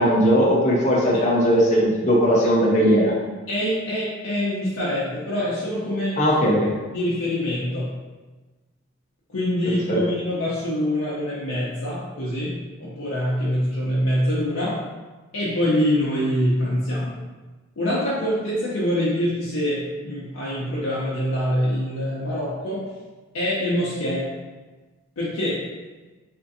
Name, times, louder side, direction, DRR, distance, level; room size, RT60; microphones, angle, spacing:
voice 1, 0.0-3.1 6.2-6.7 9.9-10.0, equal, 35° left, -4 dB, 0.6 m, -18 dB
voice 2, 3.5-6.3 6.9-7.9 9.3-12.5 12.8-14.7 15.3-17.2 17.8-22.8 23.3-24.3 25.2-25.6, equal, 75° left, -8 dB, 0.6 m, -25 dB
3.6 x 2.5 x 2.6 m, 1.2 s
head